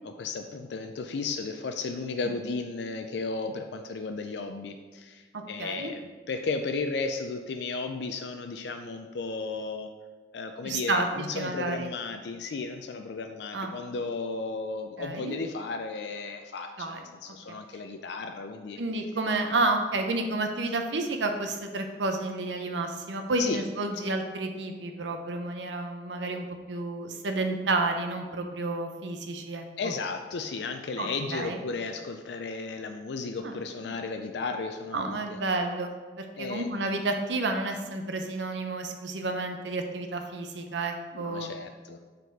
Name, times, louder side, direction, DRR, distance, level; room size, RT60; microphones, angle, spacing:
voice 1, 0.0-6.0 6.3-9.9 10.3-18.8 23.4-23.6 29.8-35.4 36.4-36.7 41.1-42.0, left 4 dB, 75° left, 5 dB, 0.4 m, -34 dB
voice 2, 5.6-5.9 10.6-11.9 13.5-13.7 15.0-15.4 16.8-17.0 17.3-17.4 18.8-29.6 31.0-31.6 33.4-33.6 33.8-34.0 34.9-41.5, right 2 dB, 85° right, 5 dB, 0.8 m, -30 dB
6.8 x 4.1 x 4.7 m, 1.4 s
head